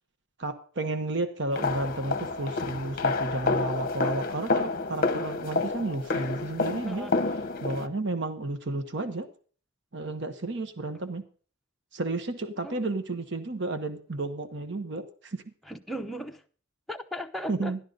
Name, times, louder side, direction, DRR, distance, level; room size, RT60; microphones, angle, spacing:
voice 1, 0.4-7.1 7.6-9.3 9.9-11.2 11.9-15.4 17.5-17.8, right 2 dB, 55° right, 1.1 m, -32 dB
sound 1, 1.5-7.9, left 3 dB, 45° left, 0.8 m, -29 dB
voice 2, 6.8-7.2 12.6-12.8 15.6-16.4 16.9-17.8, equal, ahead, 0.7 m, -37 dB
12.5 x 11.5 x 3.9 m
head